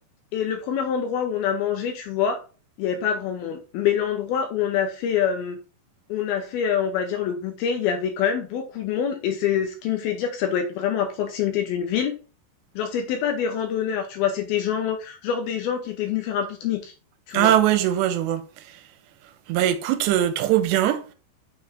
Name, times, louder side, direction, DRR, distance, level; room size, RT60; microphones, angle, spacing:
voice 1, 0.3-2.4 2.8-5.6 6.1-12.1 12.8-16.9 17.3-17.5, left 8 dB, 75° left, 2.3 m, -25 dB
voice 2, 17.3-18.8 19.5-21.1, right 12 dB, 85° right, 2.8 m, -21 dB
6.6 x 4.6 x 3.5 m
omnidirectional pair, 5.0 m